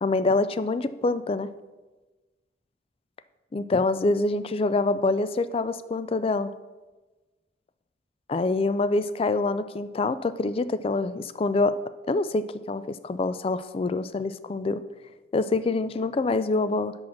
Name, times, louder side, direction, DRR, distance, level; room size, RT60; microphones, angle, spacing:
voice 1, 0.0-1.5 3.5-6.5 8.3-11.8 12.1-14.8 15.3-17.0, left 3 dB, 30° left, 14 dB, 0.3 m, -25 dB
6.2 x 5.9 x 6.3 m, 1.2 s
head